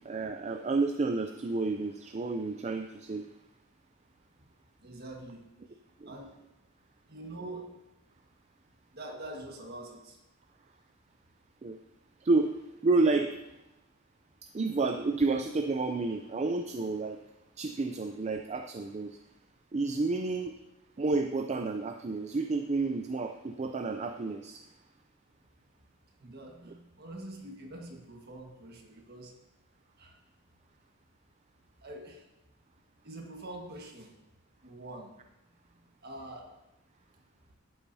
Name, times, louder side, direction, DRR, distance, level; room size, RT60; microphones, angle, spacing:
voice 1, 0.0-3.3 6.0-6.1 11.6-11.8 12.2-13.4 14.5-17.2 17.6-19.2 19.7-20.5 21.0-24.6 26.7-26.8, right 3 dB, 30° right, 6 dB, 0.4 m, -30 dB
voice 2, 4.8-5.8 6.0-6.3 7.1-7.7 8.9-10.2 26.2-29.4 30.0-30.2 31.8-32.3 33.0-34.2 34.6-35.1 35.7-36.5, right 1 dB, 50° right, 1 dB, 1.6 m, -45 dB
12.0 x 8.6 x 2.7 m, 0.95 s
head